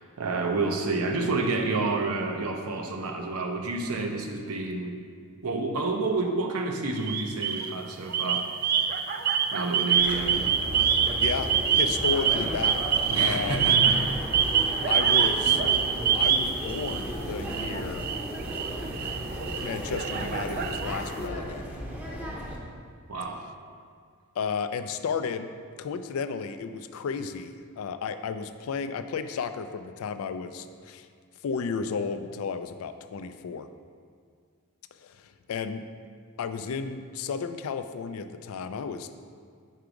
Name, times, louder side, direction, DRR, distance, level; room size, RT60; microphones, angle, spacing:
voice 1, 0.0-5.0 5.4-8.5 9.5-10.5 13.1-14.2 23.1-23.4, right 3 dB, 75° right, 3 dB, 0.7 m, -29 dB
sound 1, 7.0-7.7 8.1-17.1 17.5-21.2, right 7 dB, 45° right, 0.3 m, -26 dB
sound 2, 10.0-22.6, equal, 10° right, 0.7 m, -35 dB
voice 2, 11.2-12.8 13.2-13.6 14.9-15.6 16.1-18.1 19.6-21.7 24.4-25.5 25.8-31.1 31.4-33.7 34.9-35.9 36.4-39.2, left 5 dB, 65° left, 10 dB, 0.3 m, -33 dB
4.8 x 4.6 x 5.0 m, 2.1 s
head